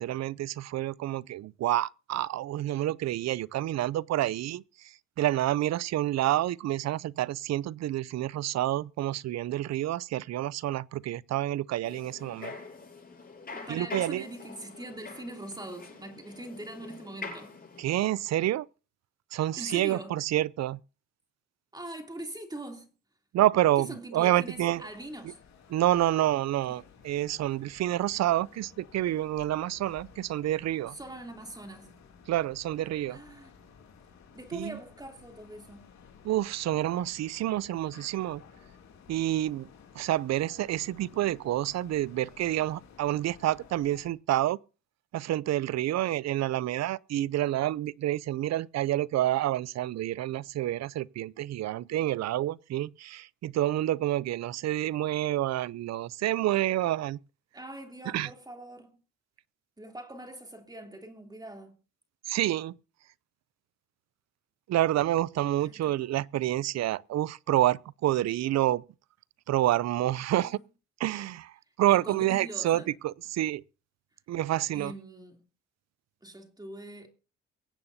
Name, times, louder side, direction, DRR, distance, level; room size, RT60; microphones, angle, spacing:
voice 1, 0.0-4.6 5.2-12.5 13.7-14.2 17.8-18.7 19.3-20.8 23.3-24.8 25.7-30.9 32.3-33.2 34.5-34.8 36.2-38.4 39.1-39.7 40.0-44.6 45.1-57.2 58.1-58.3 62.3-62.7 64.7-68.8 69.5-70.6 71.0-71.5 71.8-73.6 74.3-74.9, right 14 dB, 60° right, 0.5 m, -28 dB
sound 1, 11.8-17.8, left 4 dB, 30° left, 7.4 m, -44 dB
voice 2, 13.5-17.6 19.6-20.2 21.7-22.9 23.8-25.4 26.7-26.8 30.9-31.9 33.1-33.5 34.3-35.9 57.5-59.0 59.8-61.7 65.6-66.0 70.3-70.5 71.9-72.9 74.7-75.4 76.2-77.1, right 1 dB, 15° right, 3.0 m, -42 dB
sound 2, 24.4-44.1, left 6 dB, 65° left, 2.8 m, -55 dB
24.0 x 8.7 x 2.7 m
cardioid pair, 90°, 30 cm